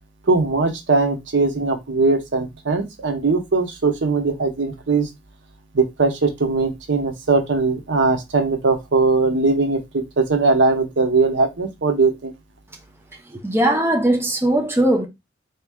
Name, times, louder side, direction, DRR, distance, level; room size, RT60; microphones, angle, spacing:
voice 1, 0.3-5.1 5.7-12.3, right 3 dB, 70° right, 0.8 m, -20 dB
voice 2, 13.3-15.1, right 1 dB, 15° right, 0.7 m, -19 dB
3.5 x 2.9 x 3.5 m
head